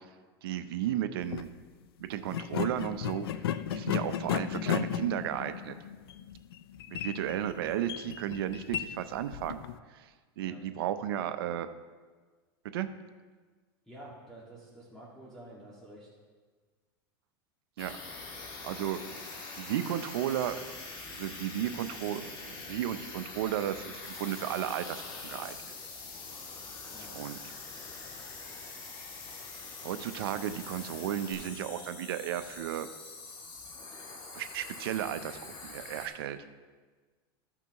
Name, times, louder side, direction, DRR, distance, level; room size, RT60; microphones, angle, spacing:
voice 1, 0.4-1.5 2.0-5.7 6.9-9.6 9.9-11.7 12.7-12.9 17.8-18.0 18.6-19.1 19.5-20.7 21.1-25.6 27.1-27.4 29.8-32.9 34.3-36.4, right 11 dB, 75° right, 10 dB, 0.6 m, -34 dB
sound 1, 1.2-1.5 2.3-9.8, left 10 dB, 90° left, 0.4 m, -35 dB
voice 2, 13.8-16.1 26.9-27.2, right 1 dB, 5° left, -7 dB, 2.0 m, -49 dB
sound 2, 17.8-36.1, left 3 dB, 40° left, 2.1 m, -45 dB
sound 3, 24.0-31.3, left 5 dB, 65° left, 1.8 m, -48 dB
14.5 x 5.9 x 3.0 m, 1.4 s
supercardioid pair, 115°, 12 cm